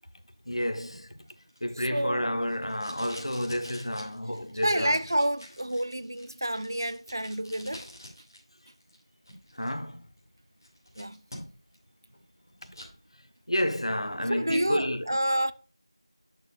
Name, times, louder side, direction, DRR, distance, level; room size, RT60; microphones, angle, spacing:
voice 1, 0.5-1.1 1.6-5.0 9.6-10.0 13.5-15.1, equal, 80° left, 1.2 m, -30 dB
Packing tape duct tape, 0.9-8.4 8.7-9.7 10.2-10.3 10.6-11.8 12.1-12.9 13.4-13.7, equal, 40° left, 3.0 m, -48 dB
voice 2, 1.9-2.2 4.6-7.9 11.0-11.2 14.3-15.5, right 1 dB, 45° right, 0.4 m, -28 dB
9.3 x 6.5 x 2.4 m
figure-of-eight pair, 175°, 3 cm